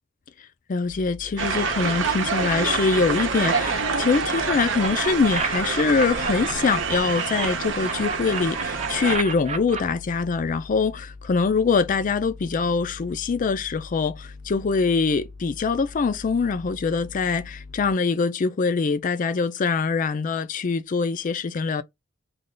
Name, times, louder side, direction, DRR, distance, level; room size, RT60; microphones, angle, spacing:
voice 1, 0.7-21.8, left 4 dB, 45° left, 0.4 m, -24 dB
sound 1, 0.8-7.0 7.3-17.9, left 3 dB, 75° left, 0.7 m, -43 dB
sound 2, 1.4-9.2, right 5 dB, 80° right, 0.7 m, -27 dB
sound 3, 2.4-3.7 4.1-7.5 7.8-9.8, right 5 dB, 35° right, 0.6 m, -31 dB
3.3 x 2.3 x 3.8 m
head